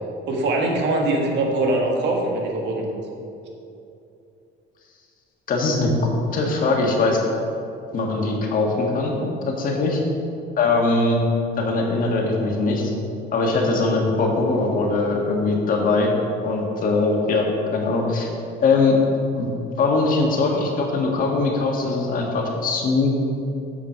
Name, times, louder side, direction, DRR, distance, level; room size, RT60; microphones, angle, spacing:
voice 1, 0.3-3.0, right 2 dB, 60° right, 1 dB, 1.7 m, -22 dB
voice 2, 5.5-5.9 6.3-7.2 7.9-9.1 9.6-10.0 10.6-11.2 11.6-12.9 13.3-16.1 16.4-18.3 18.6-19.0 19.3-19.5 19.8-23.1, left 3 dB, 45° left, 0 dB, 1.7 m, -21 dB
7.5 x 7.2 x 5.7 m, 2.7 s
cardioid pair, 140°, 20 cm